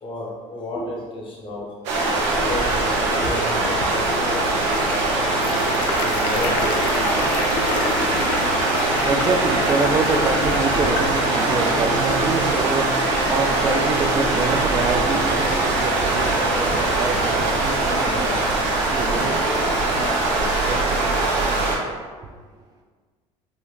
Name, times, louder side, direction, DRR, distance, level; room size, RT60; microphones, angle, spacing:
voice 1, 0.0-1.7 2.3-5.2 6.0-7.1 14.0-14.1 18.0-18.5 20.5-21.2, left 1 dB, 35° left, -3 dB, 0.8 m, -32 dB
sound 1, 1.8-21.8, right 2 dB, 90° right, 0.5 m, -21 dB
sound 2, 2.8-12.3, left 3 dB, 80° left, 0.4 m, -31 dB
voice 2, 8.5-18.5 18.8-21.1 22.0-22.3, right 3 dB, 25° right, 4 dB, 0.3 m, -27 dB
3.7 x 2.0 x 2.4 m, 1.5 s
supercardioid pair, 80°, 15 cm